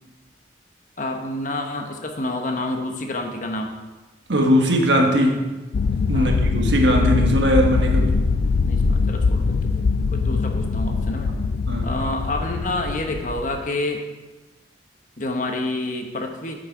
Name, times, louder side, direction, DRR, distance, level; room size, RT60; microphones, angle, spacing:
voice 1, 1.0-3.7 5.1-5.3 6.1-6.3 8.6-11.3 11.8-14.0 15.2-16.5, left 2 dB, 45° left, 4 dB, 1.0 m, -28 dB
voice 2, 4.3-5.3 6.1-8.2 11.7-11.9, equal, 85° right, 2 dB, 1.3 m, -19 dB
sound 1, 5.7-13.6, left 4 dB, 80° left, 0.3 m, -22 dB
8.9 x 6.6 x 4.6 m, 1.1 s
head